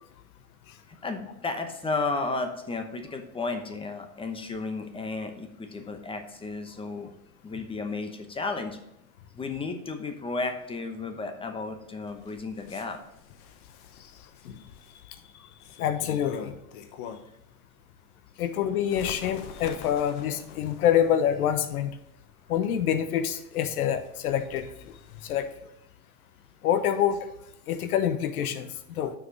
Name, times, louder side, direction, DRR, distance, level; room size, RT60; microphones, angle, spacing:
voice 1, 0.9-7.1 7.4-8.8 9.3-13.0, left 3 dB, 10° left, 6 dB, 0.9 m, -33 dB
Bird, 12.0-17.5 17.9-25.6, left 7 dB, 45° left, 0.9 m, -46 dB
voice 2, 15.8-16.6 18.4-22.0 22.5-24.9 25.2-25.5 26.6-27.3 27.7-29.1, left 9 dB, 80° left, 9 dB, 0.9 m, -26 dB
6.4 x 5.0 x 6.2 m, 0.85 s
hypercardioid pair, 120°, 44 cm